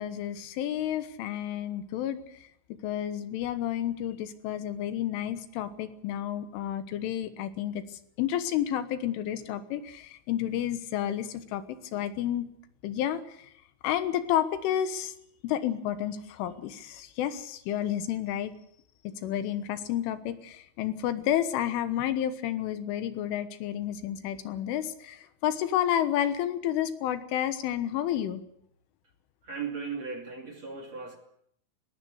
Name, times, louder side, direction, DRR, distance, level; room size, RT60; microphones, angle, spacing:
voice 1, 0.0-2.2 2.8-7.8 8.2-11.6 11.9-12.5 12.8-13.4 13.8-15.1 15.4-18.5 19.1-28.4, left 11 dB, 80° left, 3.7 m, -30 dB
voice 2, 29.4-31.2, right 5 dB, 40° right, 3.3 m, -37 dB
19.5 x 19.0 x 8.0 m
omnidirectional pair, 5.6 m